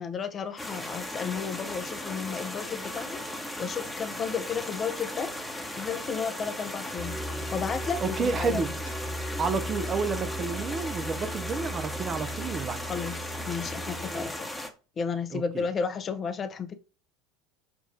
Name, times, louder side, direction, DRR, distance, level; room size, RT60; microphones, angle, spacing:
voice 1, 0.0-3.2 3.6-5.3 5.7-7.2 7.5-8.7 12.9-14.5 15.0-16.8, left 6 dB, 30° left, 0.4 m, -33 dB
sound 1, 0.6-9.0, equal, 85° left, 1.2 m, -54 dB
sound 2, 0.6-14.7, left 1 dB, 5° left, 0.9 m, -37 dB
sound 3, 7.0-14.3, right 1 dB, 45° right, 1.7 m, -37 dB
voice 2, 8.0-8.7 9.4-12.8 15.3-15.7, right 5 dB, 30° right, 0.4 m, -30 dB
5.9 x 2.3 x 2.6 m
figure-of-eight pair, 75°, 0 cm